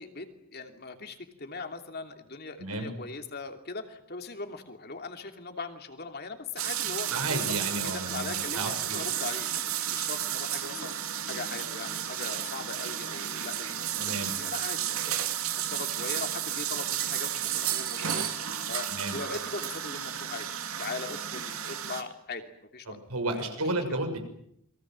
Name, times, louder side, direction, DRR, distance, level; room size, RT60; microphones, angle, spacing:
voice 1, 0.0-7.5 7.8-18.4 18.7-20.5 20.8-23.0 23.3-23.6 23.9-24.0, left 3 dB, 45° left, 5 dB, 2.9 m, -40 dB
voice 2, 2.6-2.9 7.1-9.0 14.0-14.3 18.9-19.2 22.9-24.2, right 2 dB, 90° right, 6 dB, 6.4 m, -32 dB
sound 1, 6.6-22.0, right 10 dB, 70° right, 2.6 m, -32 dB
28.5 x 23.0 x 7.6 m, 0.75 s
head